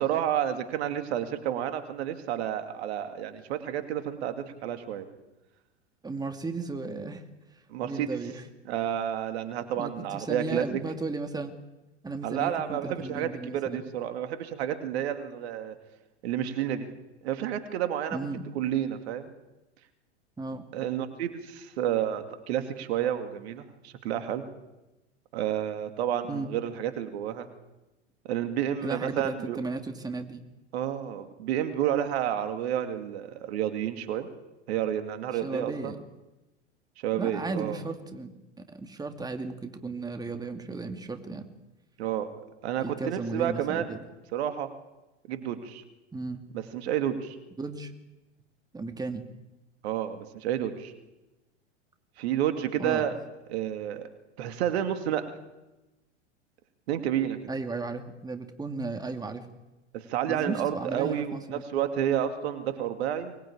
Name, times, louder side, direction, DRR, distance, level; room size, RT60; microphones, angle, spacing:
voice 1, 0.0-5.0 7.7-8.2 8.7-10.6 12.2-15.7 16.2-16.9 17.2-18.3 18.5-19.3 20.7-24.5 25.3-27.5 28.3-29.6 30.7-34.3 34.7-35.9 37.0-37.8 42.0-42.3 42.6-44.0 44.3-44.7 45.3-45.8 46.5-47.4 49.8-50.9 52.2-53.2 53.5-54.0 54.4-55.2 56.9-57.4 59.9-63.3, right 10 dB, 65° right, 8 dB, 2.5 m, -30 dB
voice 2, 6.0-7.2 7.5-8.5 9.8-11.5 12.0-13.8 18.1-18.4 20.4-20.6 26.3-26.5 28.8-30.4 35.4-36.0 37.1-41.5 42.8-44.0 46.1-46.4 47.6-47.9 48.7-49.2 52.8-53.0 57.5-59.5 60.3-61.6, right 3 dB, 10° right, 6 dB, 2.3 m, -35 dB
24.0 x 19.5 x 8.8 m, 1.0 s
hypercardioid pair, 95°, 35 cm